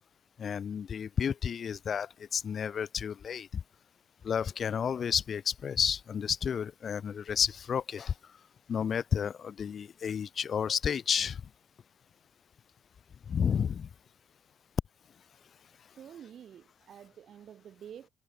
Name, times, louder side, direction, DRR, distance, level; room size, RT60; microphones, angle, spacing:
voice 1, 0.4-3.6 4.2-8.1 8.7-11.4 13.3-13.9, left 7 dB, 55° left, 3.8 m, -31 dB
voice 2, 15.9-18.1, right 9 dB, 60° right, 6.1 m, -49 dB
supercardioid pair, 70°, 0 cm